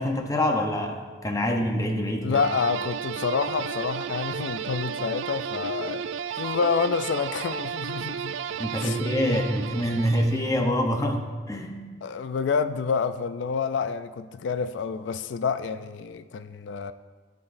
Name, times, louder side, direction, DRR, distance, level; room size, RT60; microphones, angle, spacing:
voice 1, 0.0-2.4 8.6-11.8, left 1 dB, 20° left, 0.8 m, -26 dB
voice 2, 2.2-6.0 6.3-8.3 8.8-9.0 12.0-16.9, left 5 dB, 70° left, 0.3 m, -28 dB
sound 1, 2.3-10.7, right 8 dB, 75° right, 0.3 m, -33 dB
15.0 x 6.0 x 2.6 m
head